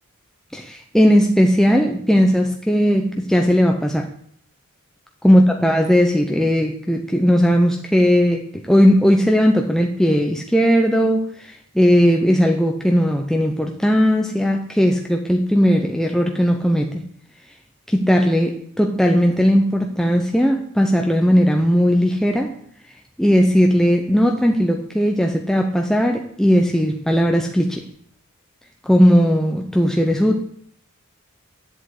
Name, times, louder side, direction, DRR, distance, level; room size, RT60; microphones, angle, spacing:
voice 1, 0.5-4.1 5.2-17.0 17.9-22.6 23.2-27.8 28.8-30.4, equal, ahead, 2 dB, 0.8 m, -17 dB
10.5 x 7.9 x 8.5 m, 0.64 s
head